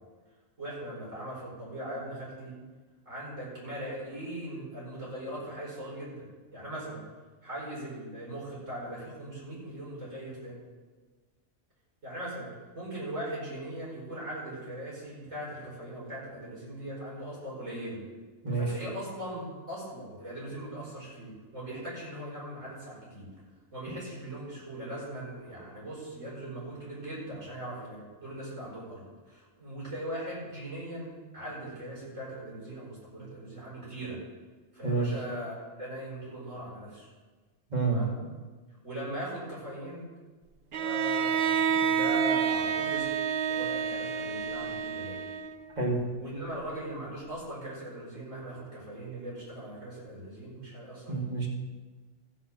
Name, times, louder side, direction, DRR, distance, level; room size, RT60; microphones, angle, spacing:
voice 1, 0.6-2.6 3.1-6.2 6.5-7.0 7.4-10.6 12.0-18.0 18.5-23.3 23.7-34.2 34.7-37.1 37.8-38.2 38.8-40.1 40.7-45.2 46.2-51.1, right 1 dB, 90° right, -6 dB, 5.7 m, -40 dB
voice 2, 37.7-38.0 45.8-46.0 51.1-51.5, right 3 dB, 35° right, -2 dB, 2.3 m, -28 dB
Bowed string instrument, 40.7-45.7, right 8 dB, 60° right, 0.9 m, -29 dB
14.5 x 6.1 x 7.6 m, 1.3 s
omnidirectional pair, 1.3 m